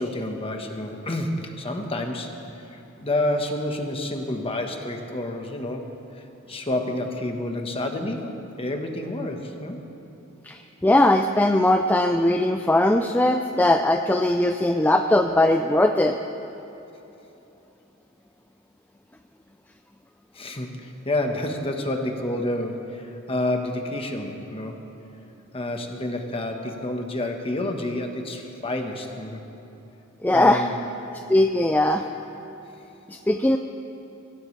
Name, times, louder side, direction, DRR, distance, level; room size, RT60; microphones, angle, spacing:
voice 1, 0.0-6.2 6.5-9.8 20.3-24.8 25.5-29.4 30.3-30.7, left 1 dB, 25° left, 3 dB, 1.3 m, -29 dB
voice 2, 10.4-16.2 30.2-30.6 31.3-32.0 33.1-33.6, left 1 dB, 10° left, 5 dB, 0.4 m, -20 dB
23.5 x 15.5 x 3.3 m, 3.0 s
head